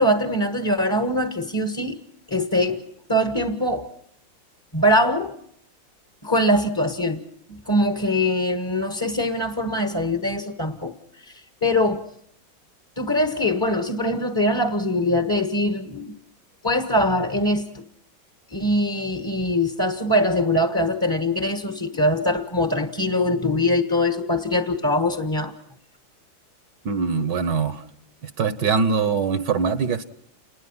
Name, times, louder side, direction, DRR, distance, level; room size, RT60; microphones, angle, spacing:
voice 1, 0.0-2.0 2.3-3.9 4.7-5.4 6.2-7.2 7.5-11.0 11.3-12.1 13.0-16.1 16.6-17.8 18.5-25.5, left 1 dB, 15° left, 1.1 m, -22 dB
voice 2, 26.9-27.8 28.2-30.0, right 5 dB, 65° right, 1.7 m, -23 dB
28.5 x 20.5 x 5.6 m
omnidirectional pair, 2.2 m